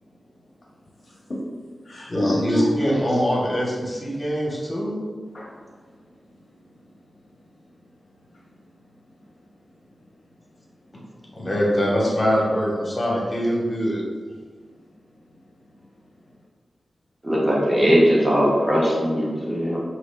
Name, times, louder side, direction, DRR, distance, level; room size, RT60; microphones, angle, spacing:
voice 1, 1.0-1.4 1.8-2.9 5.3-5.9 7.4-7.5 8.3-8.4 16.0-16.1, left 1 dB, 60° left, -3 dB, 0.8 m, -32 dB
voice 2, 2.1-5.0 11.3-14.0, equal, 40° left, -4 dB, 1.2 m, -23 dB
voice 3, 17.2-19.8, equal, 20° right, -5 dB, 1.3 m, -19 dB
4.8 x 3.0 x 2.3 m, 1.6 s
cardioid pair, 40°, 0 cm